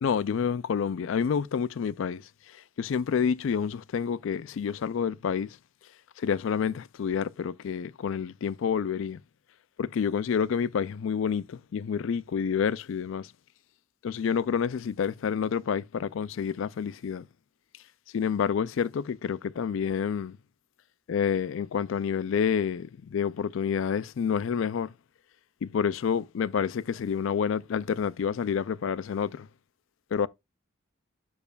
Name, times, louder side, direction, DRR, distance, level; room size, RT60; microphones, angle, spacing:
voice 1, 0.0-2.2 2.5-5.6 6.2-9.2 9.8-13.3 14.0-17.2 18.1-20.4 21.1-24.9 25.6-29.5 30.1-30.3, left 7 dB, 65° left, 0.3 m, -28 dB
11.5 x 4.8 x 2.3 m
head